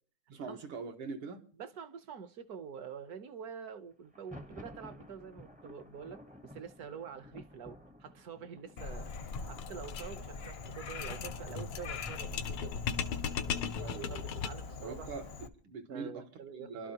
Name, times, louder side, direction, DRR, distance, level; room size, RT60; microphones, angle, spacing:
voice 1, 0.3-1.4 13.8-14.2 14.8-16.3 16.6-16.9, right 4 dB, 85° right, 2.3 m, -43 dB
voice 2, 1.6-12.8 13.5-15.1 15.9-16.9, right 7 dB, 60° right, 1.1 m, -47 dB
Thunder, 4.0-11.8, left 1 dB, 10° right, 0.5 m, -54 dB
Frog, 8.8-15.5, left 4 dB, 50° left, 0.7 m, -43 dB
sound 1, 9.1-14.8, left 7 dB, 85° left, 1.7 m, -38 dB
28.5 x 12.5 x 2.9 m
omnidirectional pair, 2.3 m